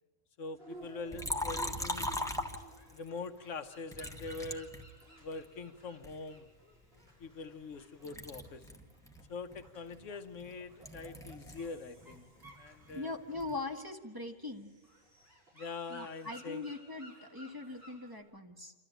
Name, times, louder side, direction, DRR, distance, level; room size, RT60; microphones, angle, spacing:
voice 1, 0.4-2.2 2.9-4.7 5.2-6.4 7.2-8.6 9.3-12.2 12.6-13.1 15.5-16.7, left 3 dB, 70° left, 9 dB, 1.2 m, -43 dB
sound 1, 0.6-18.2, right 2 dB, 45° right, 6.3 m, -56 dB
Liquid, 1.1-3.1 3.9-5.5 6.0-7.8 8.0-11.7 12.0-13.6, left 1 dB, 5° left, 1.3 m, -40 dB
voice 2, 12.9-14.7 15.9-18.7, left 3 dB, 15° right, 2 dB, 1.6 m, -41 dB
28.0 x 13.5 x 9.1 m, 1.3 s
omnidirectional pair, 1.4 m